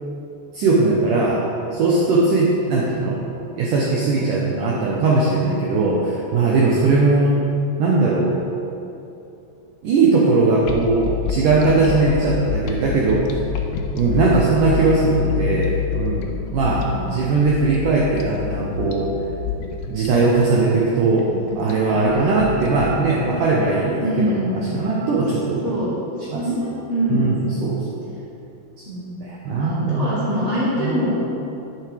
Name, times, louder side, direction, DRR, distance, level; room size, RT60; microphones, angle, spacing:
voice 1, 0.5-1.4 1.7-3.2 3.6-7.4 7.8-8.4 9.8-13.3 13.9-19.1 19.9-21.3 21.6-25.7 26.3-26.4 27.1-27.8 29.2-30.1 30.8-31.0, right 3 dB, 80° right, -4 dB, 1.9 m, -19 dB
sound 1, 10.6-23.7, left 7 dB, 80° left, 2.6 m, -28 dB
voice 2, 16.6-17.1 24.0-24.8 25.6-26.0 26.3-27.7 28.8-29.2 29.5-31.3, equal, 35° left, -10 dB, 1.1 m, -25 dB
10.5 x 9.6 x 3.4 m, 2.7 s
omnidirectional pair, 5.0 m